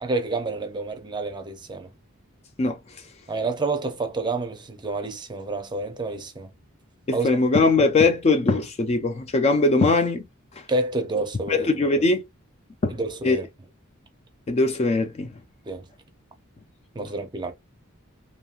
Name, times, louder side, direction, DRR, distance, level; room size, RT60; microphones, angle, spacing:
voice 1, 0.0-1.9 3.3-6.5 7.1-7.3 10.7-11.7 12.9-13.5 15.7-15.8 16.9-17.5, right 3 dB, 20° right, 0.5 m, -28 dB
voice 2, 7.1-10.2 10.6-10.7 11.5-12.2 12.8-12.9 13.2-13.4 14.5-15.3, left 3 dB, 30° left, 0.3 m, -21 dB
2.9 x 2.6 x 2.4 m
head